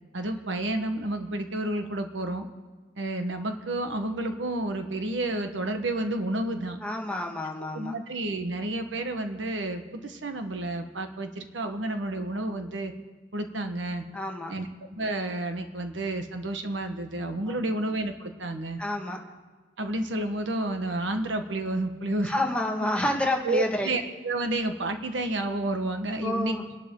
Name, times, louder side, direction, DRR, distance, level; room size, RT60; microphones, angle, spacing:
voice 1, 0.1-2.5 3.0-6.8 7.7-12.9 13.3-14.0 14.5-18.8 19.8-22.3 23.4-26.6, right 1 dB, 85° right, 6 dB, 1.3 m, -30 dB
voice 2, 6.8-8.0 14.1-14.5 17.5-17.6 18.8-19.2 22.2-23.9 26.2-26.6, left 1 dB, 5° left, 0 dB, 1.7 m, -29 dB
29.5 x 11.5 x 3.8 m, 1.4 s
head